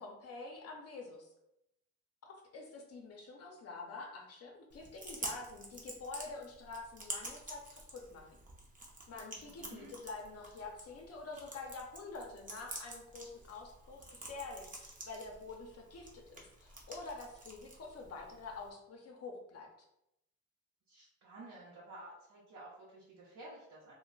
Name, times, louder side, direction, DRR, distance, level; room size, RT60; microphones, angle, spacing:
voice 1, 0.0-1.3 2.3-8.4 9.1-19.7, left 3 dB, 55° left, 1 dB, 0.6 m, -47 dB
Chewing mastication, 4.7-18.7, right 2 dB, 25° right, 0.7 m, -49 dB
voice 2, 9.4-10.0 20.9-23.9, right 2 dB, 70° right, -6 dB, 0.8 m, -52 dB
2.2 x 2.1 x 3.7 m, 0.85 s
cardioid pair, 90°, 30 cm